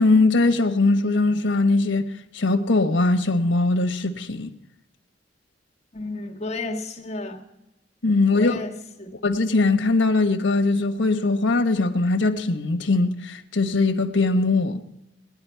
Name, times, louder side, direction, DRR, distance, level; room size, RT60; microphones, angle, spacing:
voice 1, 0.0-4.5 8.0-8.5 9.2-14.8, left 3 dB, 85° left, 1.1 m, -21 dB
voice 2, 5.9-7.4 8.3-9.2, left 2 dB, 35° left, 1.6 m, -32 dB
19.0 x 10.5 x 4.6 m
head